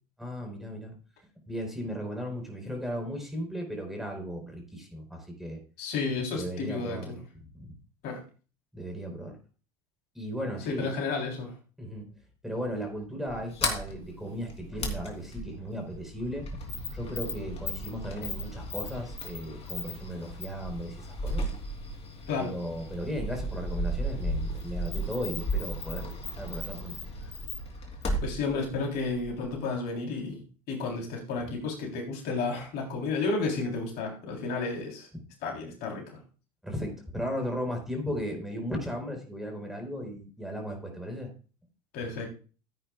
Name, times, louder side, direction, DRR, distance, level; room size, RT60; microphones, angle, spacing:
voice 1, 0.2-0.9 1.5-5.6 6.4-7.2 7.5-7.7 8.7-9.4 10.1-10.9 11.8-12.1 12.4-16.4 16.9-21.5 22.4-27.0 36.6-41.3, equal, ahead, 3 dB, 4.5 m, -36 dB
voice 2, 5.8-7.2 8.0-8.2 10.7-11.5 22.3-22.6 28.2-35.1 35.4-36.2 41.9-42.3, left 4 dB, 55° left, 0 dB, 3.6 m, -32 dB
Sliding door, 13.3-29.6, equal, 30° left, 3.1 m, -35 dB
15.5 x 8.9 x 2.4 m, 0.36 s
hypercardioid pair, 85°, 19 cm